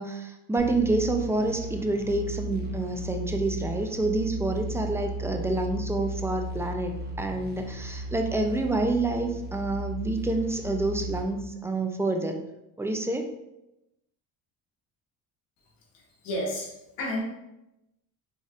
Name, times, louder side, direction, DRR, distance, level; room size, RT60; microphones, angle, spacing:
voice 1, 0.0-12.4 12.8-13.3, right 2 dB, 5° right, 4 dB, 0.5 m, -28 dB
sound 1, 0.6-11.2, right 1 dB, 25° right, 1.0 m, -35 dB
voice 2, 15.9-16.7 17.0-17.2, left 1 dB, 85° left, -2 dB, 1.5 m, -31 dB
5.1 x 3.9 x 2.5 m, 0.92 s
supercardioid pair, 80°, 42 cm